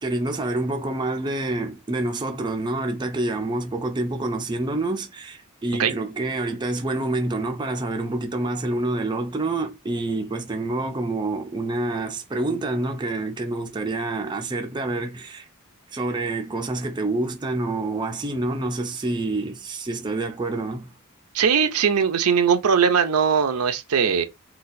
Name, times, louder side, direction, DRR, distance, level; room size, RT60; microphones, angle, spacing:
voice 1, 0.0-15.5 15.9-20.9, right 2 dB, 20° right, 0.4 m, -27 dB
voice 2, 21.3-24.2, right 6 dB, 85° right, 0.5 m, -20 dB
3.9 x 2.3 x 2.6 m
head